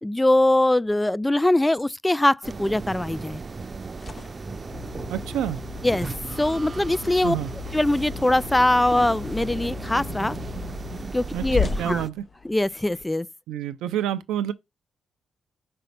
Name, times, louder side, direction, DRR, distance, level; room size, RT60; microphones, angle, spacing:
voice 1, 0.0-3.4 5.8-6.1 6.4-7.4 7.7-10.4 11.1-12.0 12.4-13.3, left 1 dB, 15° left, 0.4 m, -22 dB
sound 1, 2.4-12.1, right 4 dB, 40° right, 0.7 m, -36 dB
sound 2, 3.9-13.0, left 5 dB, 40° left, 0.9 m, -37 dB
sound 3, 4.7-11.0, left 12 dB, 70° left, 4.0 m, -40 dB
voice 2, 5.1-5.6 7.2-7.5 11.3-12.2 13.5-14.5, right 11 dB, 80° right, 0.5 m, -28 dB
5.3 x 4.1 x 5.7 m
supercardioid pair, 45°, 0 cm